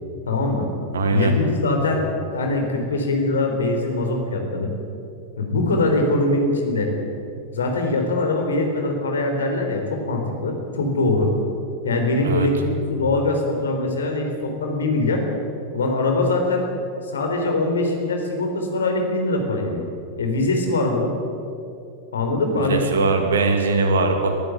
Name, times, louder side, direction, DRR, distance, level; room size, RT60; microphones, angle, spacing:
voice 1, 0.3-0.7 1.1-4.7 5.4-6.9 7.5-11.3 11.8-15.2 15.7-16.7 17.1-19.9 20.2-21.1 22.1-22.9, left 2 dB, 70° left, 3 dB, 3.9 m, -22 dB
voice 2, 0.9-1.4 12.2-12.5 22.6-24.4, right 3 dB, 65° right, 6 dB, 2.6 m, -21 dB
22.0 x 15.0 x 8.1 m, 2.7 s
figure-of-eight pair, 90°, 0 cm